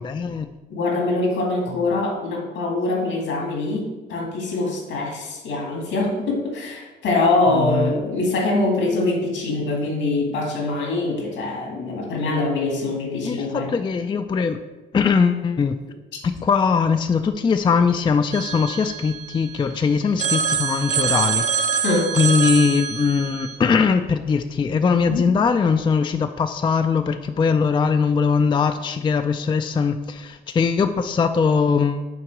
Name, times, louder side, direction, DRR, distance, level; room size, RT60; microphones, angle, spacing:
voice 1, 0.0-0.5 7.5-7.9 13.2-14.6 14.9-15.8 16.2-21.8 22.1-32.0, left 5 dB, 25° left, 8 dB, 0.3 m, -21 dB
voice 2, 0.7-13.7 21.8-22.1 25.1-25.2, left 2 dB, 75° left, 0 dB, 2.0 m, -23 dB
Telephone, 18.3-19.7 20.2-23.6, right 6 dB, 35° right, 0.6 m, -25 dB
6.0 x 3.6 x 6.0 m, 1.1 s
cardioid pair, 90°, 20 cm